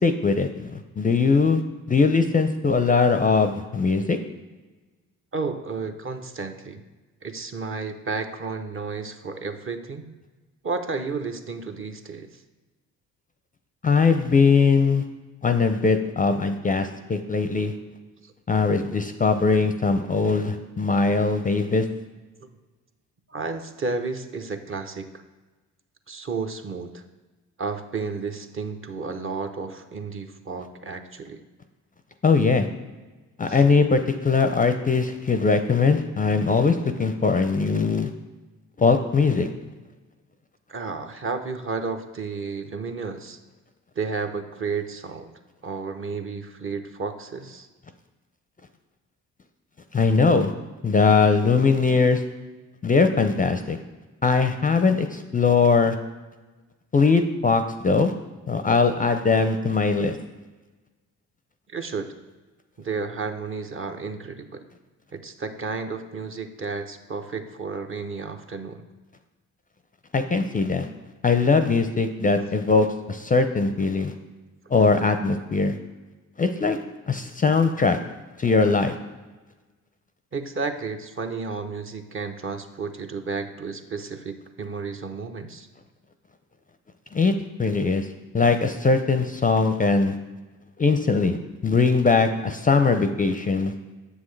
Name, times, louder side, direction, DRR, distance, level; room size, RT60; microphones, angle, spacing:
voice 1, 0.0-1.6 1.9-4.2 13.8-15.0 15.4-17.7 18.5-21.9 32.2-32.7 33.4-38.1 38.8-39.5 49.9-50.5 50.8-52.2 52.8-53.8 54.2-56.0 56.9-58.1 58.5-60.2 70.1-70.9 71.2-74.1 74.7-75.7 76.4-76.8 77.1-78.0 78.4-79.0 87.1-87.3 87.6-88.1 88.3-90.2 90.8-91.4 91.6-93.7, left 4 dB, 25° left, 8 dB, 0.5 m, -21 dB
voice 2, 5.3-6.8 7.2-10.1 10.6-12.3 18.2-18.3 23.3-25.1 26.1-27.0 27.6-31.4 33.5-33.6 40.7-43.4 44.0-45.3 45.6-47.7 61.7-62.1 62.8-64.6 65.1-68.8 80.3-85.7, right 4 dB, 35° right, 6 dB, 0.7 m, -32 dB
7.0 x 6.2 x 3.2 m, 1.2 s
supercardioid pair, 55°, 37 cm